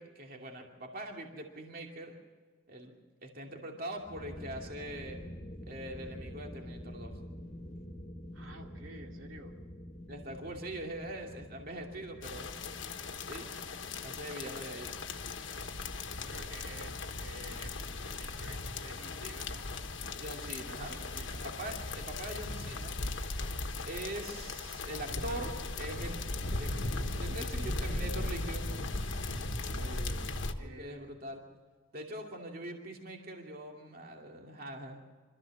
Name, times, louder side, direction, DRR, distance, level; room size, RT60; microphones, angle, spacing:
voice 1, 0.0-2.1 2.7-2.9 3.2-5.2 5.7-7.1 10.1-12.5 13.3-13.7 14.0-15.0 20.2-20.9 21.6-23.0 23.9-26.2 26.6-28.7 30.6-31.4 31.9-35.0, right 1 dB, 45° right, 1 dB, 2.5 m, -42 dB
sound 1, 3.9-22.8, equal, 35° left, 1.7 m, -49 dB
voice 2, 8.3-9.6 16.2-19.7 20.9-21.8 29.2-31.1, right 2 dB, 80° right, 1 dB, 2.7 m, -51 dB
sound 2, 12.2-30.5, left 2 dB, 65° left, 1.3 m, -38 dB
26.0 x 14.0 x 7.2 m, 1.5 s
head